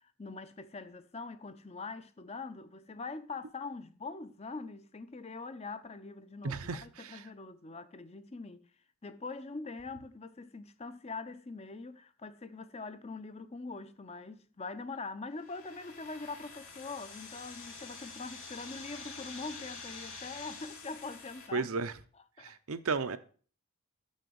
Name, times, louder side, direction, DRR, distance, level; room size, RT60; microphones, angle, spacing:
voice 1, 0.0-8.6 9.0-21.7 22.4-22.5, left 3 dB, 30° left, 0.6 m, -43 dB
voice 2, 6.4-7.3 21.5-21.9 22.4-23.2, right 4 dB, 70° right, 0.7 m, -34 dB
sound 1, 15.4-21.5, left 4 dB, 70° left, 2.9 m, -47 dB
6.9 x 6.5 x 6.8 m
head